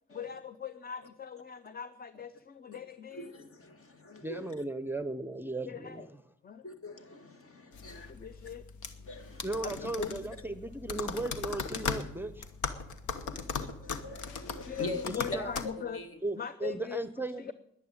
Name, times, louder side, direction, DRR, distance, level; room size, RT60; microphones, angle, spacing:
voice 1, 0.1-3.3 5.7-6.1 6.4-6.6 7.9-8.6 9.6-10.2 14.7-16.0 16.4-17.1 17.4-17.5, left 7 dB, 30° left, 13 dB, 0.7 m, -41 dB
voice 2, 3.1-4.5 6.6-8.1 9.1-9.5 13.8-15.5 15.8-16.2, left 1 dB, 45° left, 7 dB, 2.1 m, -42 dB
voice 3, 4.2-6.2 9.4-12.5 15.1-15.5 16.2-17.5, right 2 dB, 5° right, 12 dB, 0.7 m, -36 dB
sound 1, 7.7-15.6, left 6 dB, 80° left, 1.2 m, -38 dB
10.5 x 10.5 x 8.9 m, 0.81 s
supercardioid pair, 70°, 30 cm